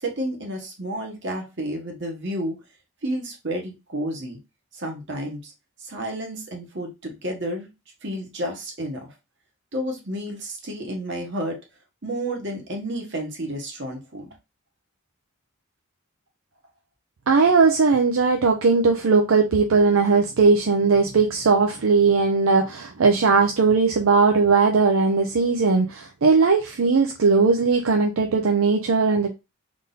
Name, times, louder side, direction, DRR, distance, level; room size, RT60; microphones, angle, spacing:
voice 1, 0.0-2.5 3.0-4.4 4.7-5.5 5.8-7.7 8.0-9.1 9.7-11.6 12.0-14.3, right 1 dB, 55° right, 1.2 m, -31 dB
voice 2, 17.3-29.3, right 4 dB, 70° right, 0.5 m, -19 dB
3.7 x 2.7 x 3.8 m
head